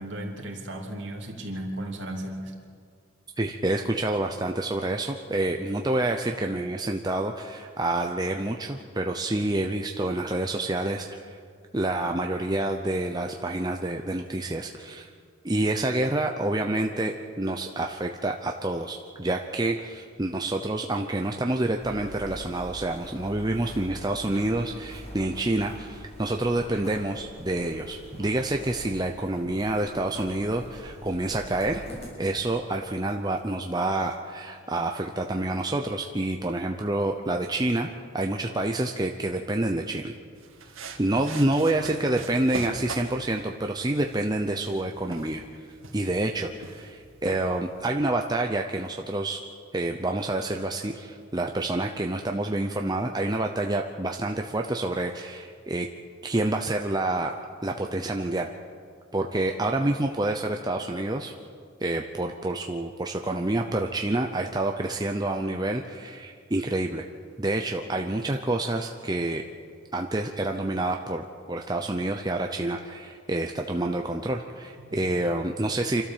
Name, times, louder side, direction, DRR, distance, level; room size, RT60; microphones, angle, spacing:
voice 1, 0.0-2.5 74.9-75.0, right 1 dB, 55° right, 0 dB, 3.3 m, -35 dB
voice 2, 3.4-11.4 11.7-15.1 15.4-31.8 32.2-40.1 41.0-45.4 45.9-49.4 49.7-55.9 56.2-57.3 57.6-58.5 59.1-61.3 61.8-67.1 67.4-69.4 69.9-76.0, right 2 dB, 20° right, 3 dB, 0.7 m, -28 dB
sound 1, 21.8-32.1, equal, 30° left, 6.4 m, -44 dB
sound 2, 40.4-47.8, right 3 dB, 75° right, 2.2 m, -42 dB
27.5 x 13.0 x 7.4 m, 2.2 s
head